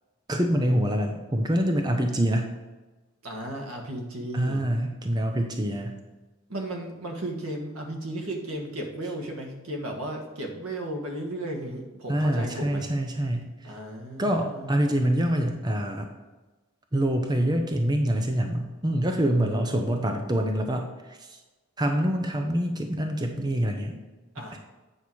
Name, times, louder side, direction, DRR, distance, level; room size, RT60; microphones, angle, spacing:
voice 1, 0.3-2.5 4.3-6.0 12.1-13.5 14.2-16.1 16.9-21.4 21.8-24.0 24.5-24.6, equal, 20° right, 4 dB, 0.6 m, -25 dB
voice 2, 3.2-4.6 6.5-12.8 13.6-14.7 24.3-24.6, right 1 dB, 90° right, 2 dB, 1.7 m, -35 dB
8.5 x 5.6 x 4.7 m, 1.2 s
head